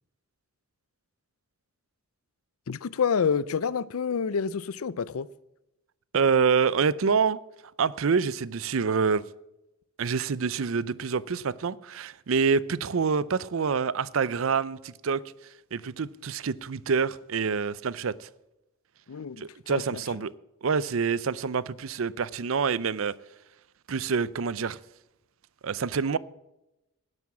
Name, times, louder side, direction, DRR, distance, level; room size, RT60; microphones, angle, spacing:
voice 1, 2.7-5.3 19.1-20.0, left 6 dB, 90° left, 0.5 m, -28 dB
voice 2, 6.1-7.4 7.8-9.2 10.0-15.2 15.7-18.3 19.4-20.3 20.6-23.1 23.9-24.8 25.6-26.2, right 5 dB, 75° right, 0.5 m, -26 dB
12.5 x 9.8 x 7.2 m
head